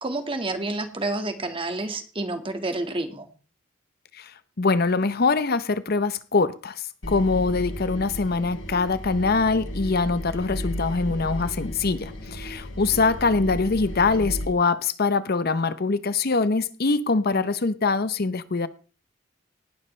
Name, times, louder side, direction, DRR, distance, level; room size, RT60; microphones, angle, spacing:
voice 1, 0.0-3.3, right 2 dB, 25° right, 1.8 m, -29 dB
voice 2, 4.1-18.7, left 4 dB, 50° left, 0.8 m, -23 dB
sound 1, 7.0-14.5, left 1 dB, 85° left, 3.5 m, -34 dB
18.5 x 12.0 x 3.3 m
head